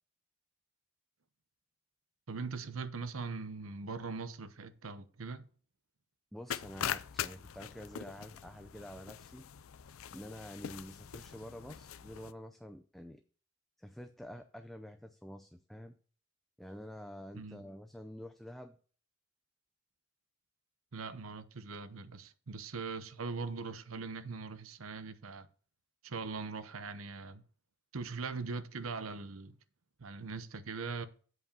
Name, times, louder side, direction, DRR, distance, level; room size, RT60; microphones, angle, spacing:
voice 1, 2.3-5.5 17.3-17.6 20.9-25.5 26.0-27.4 27.9-29.6 30.0-31.1, right 4 dB, 85° right, 0.8 m, -41 dB
voice 2, 6.3-9.5 10.1-13.2 13.8-16.0 16.6-18.8, equal, ahead, 0.4 m, -48 dB
sound 1, 6.5-12.3, left 9 dB, 85° left, 0.5 m, -42 dB
8.0 x 4.9 x 6.9 m
head